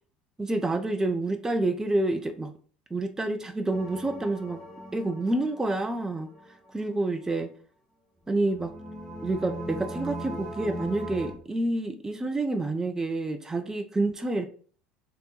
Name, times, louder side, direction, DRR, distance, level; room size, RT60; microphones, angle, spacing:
voice 1, 0.4-2.5 2.9-4.6 4.9-6.3 6.7-7.5 8.3-8.7 9.2-14.5, right 2 dB, 10° right, 7 dB, 0.5 m, -28 dB
sound 1, 3.7-6.5 8.3-11.3, right 1 dB, 10° left, 1.2 m, -39 dB
3.4 x 2.9 x 3.8 m, 0.43 s
figure-of-eight pair, 70°, 5 cm